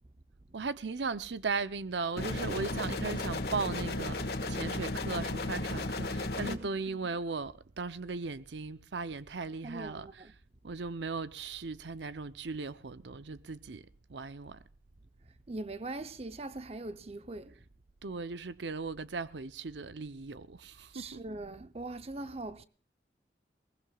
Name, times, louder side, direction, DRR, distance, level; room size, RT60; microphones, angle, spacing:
voice 1, 0.5-10.3 10.6-14.6 18.0-21.2, right 4 dB, 85° right, 0.7 m, -37 dB
sound 1, 2.2-6.6, left 2 dB, 60° left, 1.7 m, -34 dB
voice 2, 6.4-6.8 9.6-10.3 15.5-17.6 20.9-22.6, right 2 dB, 35° right, 0.7 m, -41 dB
21.5 x 20.0 x 2.4 m
head